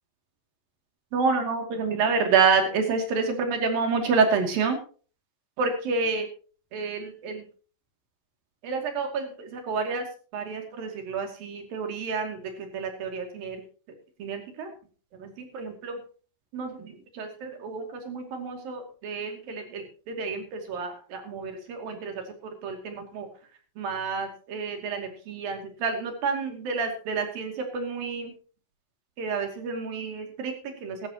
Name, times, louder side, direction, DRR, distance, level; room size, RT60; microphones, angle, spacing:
voice 1, 1.1-4.8 5.6-6.3 6.7-7.4 8.6-10.1 10.3-13.6 14.2-14.7 15.1-16.0 16.5-22.3 22.6-23.3 23.8-28.4 29.2-31.1, right 5 dB, 85° right, 4 dB, 4.4 m, -29 dB
17.0 x 14.0 x 2.9 m, 0.39 s
omnidirectional pair, 4.0 m